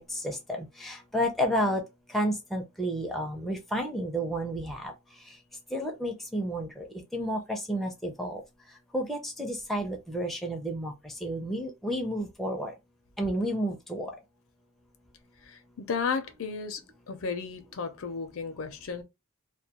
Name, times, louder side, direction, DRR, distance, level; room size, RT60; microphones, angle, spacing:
voice 1, 0.1-1.8 2.1-4.9 5.7-6.8 7.1-8.4 8.9-10.9 11.2-12.7 13.2-14.1, equal, ahead, 0.4 m, -31 dB
voice 2, 15.4-19.0, left 5 dB, 60° left, 0.5 m, -34 dB
2.2 x 2.2 x 2.8 m
head